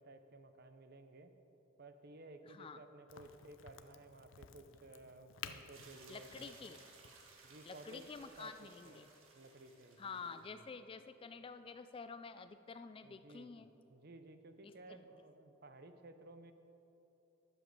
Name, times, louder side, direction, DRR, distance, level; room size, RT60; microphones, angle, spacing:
voice 1, 0.0-1.3 1.8-6.6 7.4-8.1 8.4-9.0 9.3-10.6 13.0-16.5, right 2 dB, 50° right, 8 dB, 0.7 m, -56 dB
voice 2, 2.5-2.8 6.1-6.8 7.7-9.1 10.0-13.7 14.6-15.1, left 5 dB, 25° left, 11 dB, 0.3 m, -49 dB
Crack, 3.1-8.5, left 8 dB, 70° left, 0.6 m, -54 dB
sound 1, 5.7-10.5, right 3 dB, 85° right, 1.6 m, -61 dB
11.0 x 7.4 x 6.7 m, 3.0 s
head